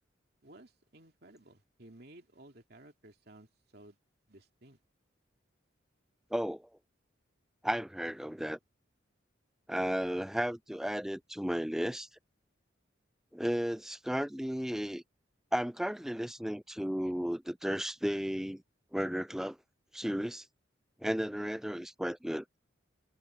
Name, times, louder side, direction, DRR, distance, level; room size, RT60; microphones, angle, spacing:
voice 1, 0.4-4.0 4.3-4.8, right 1 dB, 55° right, 2.8 m, -56 dB
voice 2, 6.3-6.7 7.6-8.6 9.7-12.1 13.3-15.0 15.5-18.6 18.9-19.6 19.9-20.5 21.0-22.4, equal, ahead, 0.4 m, -34 dB
head